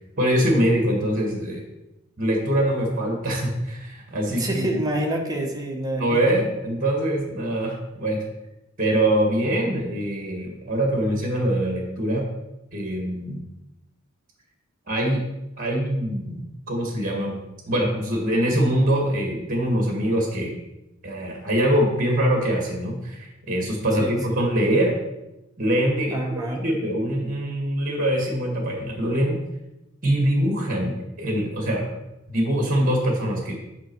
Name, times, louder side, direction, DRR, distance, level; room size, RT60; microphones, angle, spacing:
voice 1, 0.2-1.6 2.2-4.8 6.0-8.2 8.8-12.3 12.7-13.4 14.9-15.2 15.6-17.4 17.7-20.5 21.0-24.9 25.6-29.4 30.0-31.9 32.3-33.5, right 1 dB, 40° right, 1 dB, 1.7 m, -23 dB
voice 2, 4.3-6.4 24.0-24.4 26.1-26.7, right 1 dB, 20° right, 1 dB, 1.1 m, -28 dB
8.3 x 5.4 x 4.6 m, 0.94 s
head